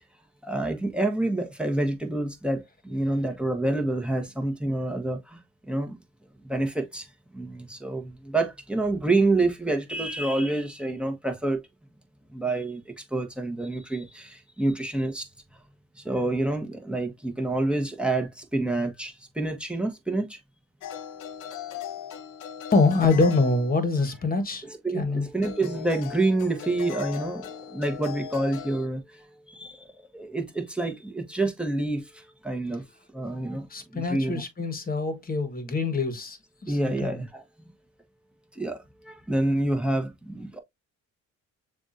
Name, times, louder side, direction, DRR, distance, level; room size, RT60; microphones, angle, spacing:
voice 1, 0.4-6.0 6.4-7.1 7.3-11.6 12.3-15.3 16.0-20.4 24.6-32.8 33.1-34.4 36.7-37.4 38.5-40.6, right 2 dB, 5° right, 1.1 m, -28 dB
sound 1, 20.8-24.2 25.4-28.9, left 9 dB, 85° left, 0.8 m, -39 dB
voice 2, 22.7-24.6 24.9-25.3 33.7-37.2, left 3 dB, 30° left, 1.4 m, -25 dB
6.9 x 2.5 x 2.6 m
cardioid pair, 90°, 30 cm